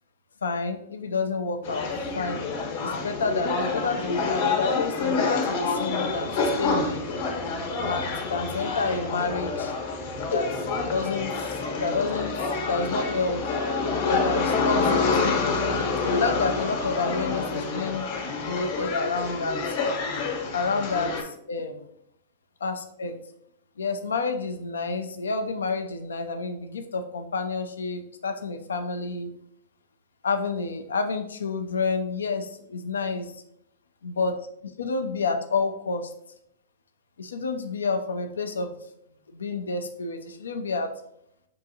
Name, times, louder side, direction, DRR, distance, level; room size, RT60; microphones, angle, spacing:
voice 1, 0.4-1.9 2.2-2.4 2.8-7.1 7.8-9.7 10.3-10.5 10.8-12.3 12.7-13.6 14.1-15.5 16.0-18.1 18.5-19.8 20.5-21.9 22.6-23.2 23.8-29.3 30.2-33.3 34.0-34.4 34.6-36.1 37.2-38.7 39.3-40.9, left 4 dB, 85° left, 7 dB, 0.4 m, -29 dB
sound 1, 1.6-21.2, left 4 dB, 60° left, 0.9 m, -27 dB
sound 2, 5.7-12.4, equal, 15° left, 0.7 m, -42 dB
5.4 x 2.7 x 2.7 m, 0.74 s
hypercardioid pair, 110°, 0 cm